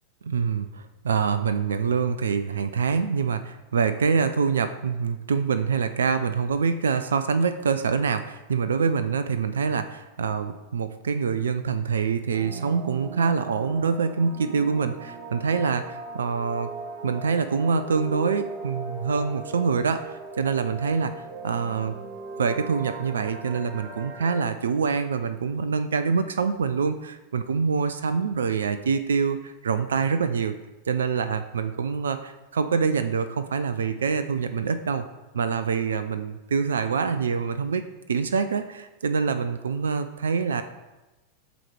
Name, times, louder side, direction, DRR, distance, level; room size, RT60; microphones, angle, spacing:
voice 1, 0.3-16.7 17.0-22.0 22.4-30.5 30.9-35.0 35.3-40.6, right 5 dB, 65° right, 10 dB, 0.3 m, -25 dB
sound 1, 12.3-24.4, right 3 dB, 40° right, 0.9 m, -38 dB
7.6 x 3.0 x 4.8 m, 1.1 s
figure-of-eight pair, 90°, 0 cm